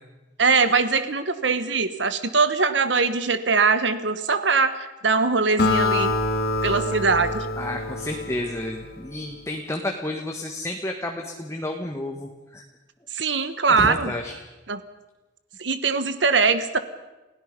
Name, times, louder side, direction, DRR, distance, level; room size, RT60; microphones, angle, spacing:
voice 1, 0.4-6.1 6.6-7.5 13.1-14.1 14.7-14.8 15.6-16.8, right 4 dB, 70° right, 11 dB, 1.3 m, -22 dB
Acoustic guitar, 5.6-9.2, left 2 dB, 60° left, 2.1 m, -25 dB
voice 2, 7.6-12.6 13.7-14.4, left 1 dB, 15° left, 2 dB, 1.5 m, -31 dB
30.0 x 17.0 x 5.3 m, 1.1 s
head